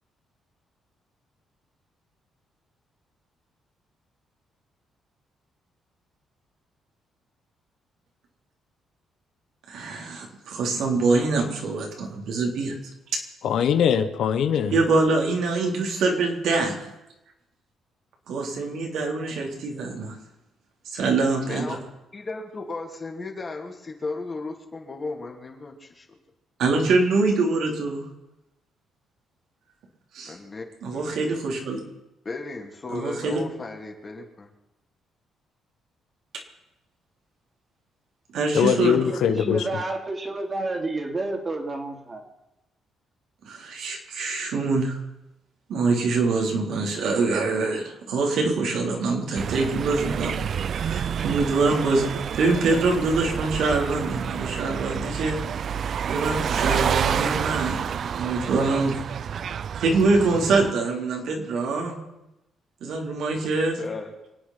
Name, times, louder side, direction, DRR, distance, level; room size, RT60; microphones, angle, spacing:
voice 1, 9.7-12.8 14.7-16.9 18.3-20.1 20.9-21.8 26.6-28.1 30.1-30.3 30.8-31.8 32.9-33.4 38.3-39.0 43.5-45.0 45.7-50.3 50.7-55.4 56.1-59.0 59.8-62.0 62.8-63.8, right 3 dB, 75° right, 1 dB, 3.8 m, -24 dB
voice 2, 13.4-14.7 38.5-39.7, left 8 dB, 75° left, 10 dB, 1.2 m, -22 dB
voice 3, 21.3-21.8 22.1-26.2 30.3-30.6 30.9-31.2 32.2-34.5 63.8-64.1, left 3 dB, 30° left, 2 dB, 3.0 m, -35 dB
voice 4, 38.8-42.2, right 2 dB, 30° right, 4 dB, 3.2 m, -30 dB
sound 1, 49.4-60.7, right 8 dB, 55° right, 0.5 m, -29 dB
26.0 x 8.8 x 5.8 m, 0.92 s
cardioid pair, 90°, 0 cm